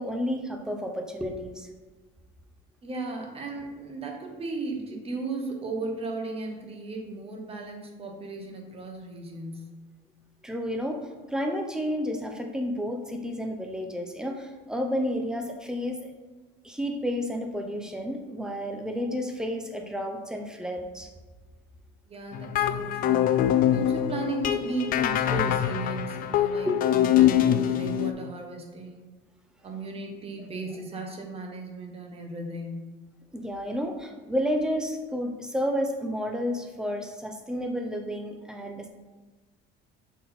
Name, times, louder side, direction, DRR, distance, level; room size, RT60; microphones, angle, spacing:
voice 1, 0.0-1.7 10.4-16.1 16.6-21.1 26.6-26.8 30.4-30.5 33.3-38.9, equal, 5° right, 3 dB, 0.7 m, -31 dB
voice 2, 2.8-9.7 22.1-23.3 23.7-29.0 29.6-32.9, right 3 dB, 30° right, 2 dB, 1.1 m, -35 dB
sound 1, 22.3-28.1, left 11 dB, 45° left, 0.4 m, -24 dB
6.2 x 4.2 x 4.2 m, 1.3 s
cardioid pair, 140°, 21 cm